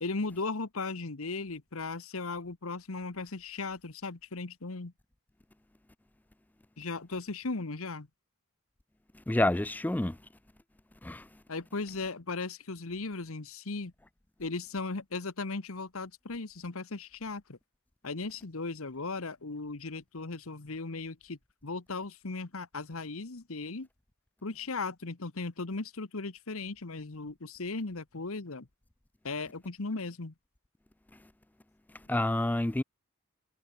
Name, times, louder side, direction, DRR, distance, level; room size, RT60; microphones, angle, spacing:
voice 1, 0.0-4.9 6.8-8.1 11.5-13.9 14.4-17.6 18.0-23.9 24.4-28.7 29.2-30.3, left 3 dB, 70° left, 1.2 m, -37 dB
voice 2, 9.3-10.2 11.0-11.3 32.1-32.8, left 1 dB, 10° left, 0.3 m, -28 dB
head